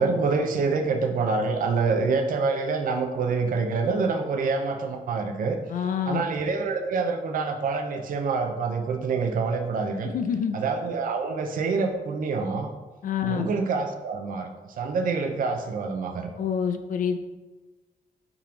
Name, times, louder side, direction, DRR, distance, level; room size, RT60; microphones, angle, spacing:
voice 1, 0.0-5.6 6.1-10.1 10.5-12.7 13.2-14.5 14.8-16.3, right 4 dB, 65° right, 4 dB, 0.5 m, -26 dB
voice 2, 5.7-6.2 10.1-10.5 13.0-13.5 16.4-17.2, left 8 dB, 65° left, 7 dB, 0.4 m, -26 dB
3.6 x 2.9 x 4.8 m, 1.2 s
cardioid pair, 110°, 15 cm